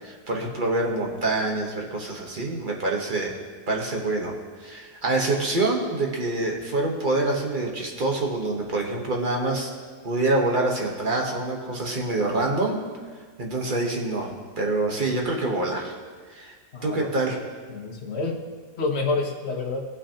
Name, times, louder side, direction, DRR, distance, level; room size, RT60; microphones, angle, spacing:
voice 1, 0.0-3.3 3.7-4.3 4.6-9.7 10.0-12.8 13.4-15.9 16.3-16.5 16.8-17.4, right 2 dB, 35° right, 0 dB, 1.1 m, -26 dB
voice 2, 16.7-17.1 17.7-18.3 18.8-19.8, left 3 dB, 45° left, 0 dB, 1.3 m, -28 dB
18.0 x 6.0 x 2.8 m, 1.5 s
omnidirectional pair, 1.7 m